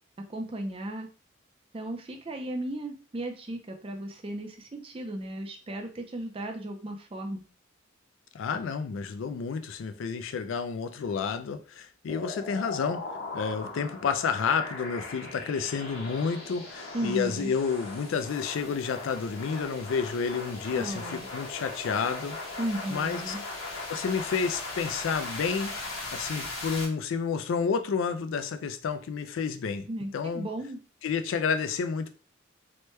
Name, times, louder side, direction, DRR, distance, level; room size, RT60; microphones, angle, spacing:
voice 1, 0.3-1.1 1.7-7.4 16.9-17.5 20.7-21.3 22.6-23.4 29.9-30.8, right 1 dB, 25° right, 4 dB, 0.4 m, -35 dB
voice 2, 8.3-13.0 13.3-22.4 22.9-23.3 23.9-25.7 26.1-29.8 30.1-30.5 31.0-32.1, left 5 dB, 70° left, 9 dB, 0.3 m, -30 dB
sound 1, 12.1-26.8, left 2 dB, 85° left, 1.2 m, -39 dB
3.0 x 2.1 x 3.1 m, 0.37 s
head